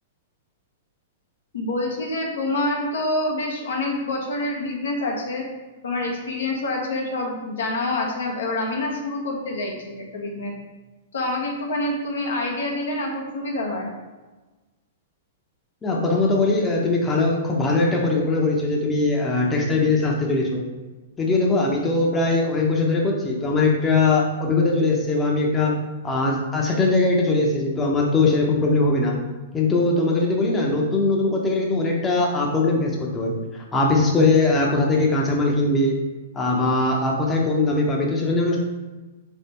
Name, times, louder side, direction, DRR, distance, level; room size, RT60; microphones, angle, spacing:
voice 1, 1.5-5.5 5.8-10.5 11.1-13.9, left 2 dB, 80° left, 0 dB, 0.9 m, -27 dB
voice 2, 15.8-20.6 21.2-25.7 26.0-29.2 29.5-36.0 36.3-38.6, left 3 dB, 20° left, -2 dB, 0.8 m, -21 dB
3.6 x 3.4 x 4.3 m, 1.2 s
hypercardioid pair, 125°, 0 cm